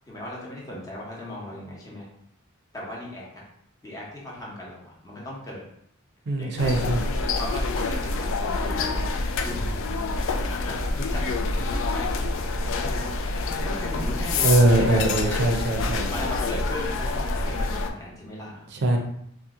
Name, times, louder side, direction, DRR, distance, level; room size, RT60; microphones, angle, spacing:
voice 1, 0.1-2.1 2.7-3.4 3.8-5.6 6.3-6.9 7.3-15.5 16.1-18.7, left 1 dB, 15° left, -5 dB, 0.8 m, -37 dB
voice 2, 6.3-7.0 14.4-16.1 18.8-19.0, right 1 dB, 55° right, 3 dB, 0.5 m, -21 dB
restaurant airport, 6.6-17.9, left 3 dB, 65° left, 0.3 m, -27 dB
2.8 x 2.1 x 3.6 m, 0.73 s
head